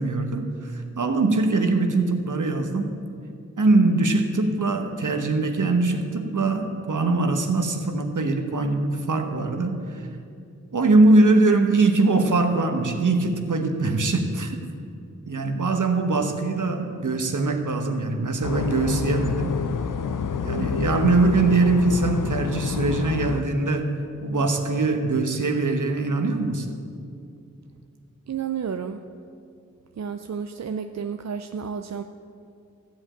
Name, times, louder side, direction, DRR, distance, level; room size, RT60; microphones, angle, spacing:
voice 1, 0.0-2.9 3.6-10.1 10.7-14.6 15.3-19.5 20.4-23.9 24.2-26.7, right 3 dB, 80° right, 5 dB, 1.1 m, -22 dB
sound 1, 18.4-23.4, left 6 dB, 85° left, 0.5 m, -27 dB
voice 2, 28.3-29.0 30.0-32.0, right 7 dB, 60° right, 8 dB, 0.5 m, -31 dB
13.5 x 5.2 x 8.7 m, 2.5 s
wide cardioid pair, 45°, 31 cm